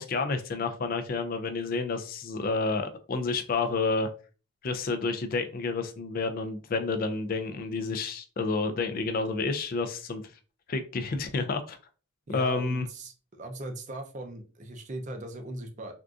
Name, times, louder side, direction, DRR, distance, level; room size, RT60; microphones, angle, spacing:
voice 1, 0.0-4.1 4.6-10.2 10.7-11.8 12.3-12.8, left 3 dB, 40° left, 0.4 m, -30 dB
voice 2, 12.3-15.9, right 1 dB, 35° right, 0.5 m, -39 dB
3.6 x 2.5 x 2.3 m
head